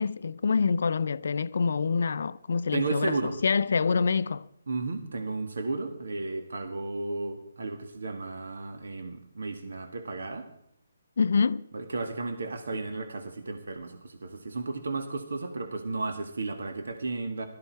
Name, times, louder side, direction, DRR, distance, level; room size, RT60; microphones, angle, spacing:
voice 1, 0.0-4.5 11.2-11.6, left 5 dB, 65° left, 0.5 m, -26 dB
voice 2, 2.7-3.4 4.7-10.5 11.7-17.5, right 3 dB, 75° right, 1.8 m, -33 dB
16.5 x 13.5 x 4.6 m
hypercardioid pair, 160°, 0 cm